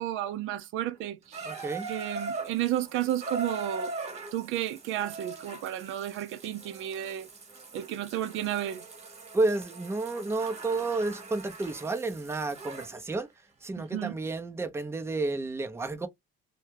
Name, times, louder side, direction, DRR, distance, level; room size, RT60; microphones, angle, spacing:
voice 1, 0.0-1.5 1.9-3.9 4.3-7.3 7.7-8.8 13.8-14.2, right 12 dB, 75° right, 0.4 m, -32 dB
Water tap faucet / Bathtub (filling or washing), 1.3-13.0 13.9-14.0, right 3 dB, 35° right, 1.1 m, -41 dB
voice 2, 1.4-1.9 9.3-13.3 13.6-16.1, right 3 dB, 10° right, 0.5 m, -31 dB
2.2 x 2.2 x 3.2 m
cardioid pair, 95°, 21 cm